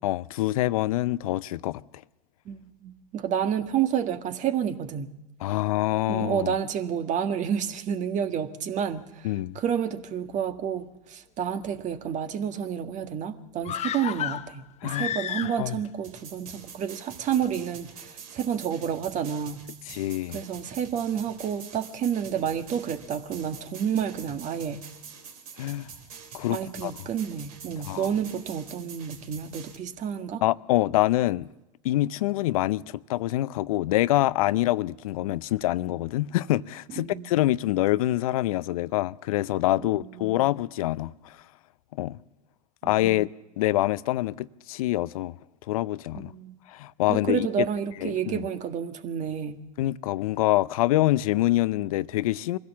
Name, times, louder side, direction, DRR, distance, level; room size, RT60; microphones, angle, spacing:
voice 1, 0.0-1.8 5.4-6.5 9.2-9.6 14.8-15.1 15.6-15.8 19.9-20.4 25.6-25.9 26.3-26.9 27.8-28.1 30.4-31.5 31.8-41.4 41.9-42.2 42.8-43.3 43.6-45.4 45.7-46.3 46.7-47.7 48.0-48.4 49.8-52.6, left 16 dB, 70° left, 0.6 m, -25 dB
voice 2, 2.4-5.1 6.1-19.6 20.3-24.9 26.5-30.4 36.9-37.2 39.8-39.9 40.2-40.4 42.8-43.2 46.1-46.6 47.1-49.6, right 8 dB, 40° right, 1.6 m, -30 dB
sound 1, 13.6-15.9 16.2-16.3, left 10 dB, 35° left, 1.1 m, -32 dB
sound 2, 16.0-29.7, right 6 dB, 75° right, 3.2 m, -46 dB
23.0 x 15.5 x 7.3 m
hypercardioid pair, 90°, 19 cm